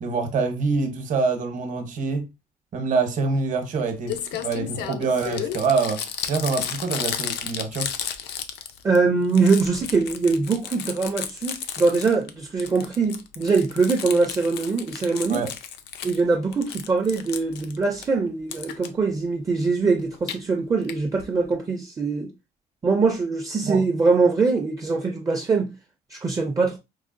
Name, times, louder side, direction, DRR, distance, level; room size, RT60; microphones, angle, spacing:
voice 1, 0.0-2.3 2.7-7.9 15.3-15.5 23.6-23.8, right 4 dB, 50° right, 0.9 m, -25 dB
Crumpling crinkling, 3.8-3.9 4.1-9.0 9.2-12.3 12.6-16.2 16.5-18.1 18.5-18.9 20.0-20.4 20.9-21.0 21.2-21.3 21.5-21.6, left 9 dB, 80° left, 0.5 m, -33 dB
voice 2, 8.8-15.4 16.0-22.3 22.8-25.7 26.1-26.8, right 4 dB, 20° right, 0.4 m, -22 dB
4.7 x 2.1 x 2.5 m
cardioid pair, 110°, 17 cm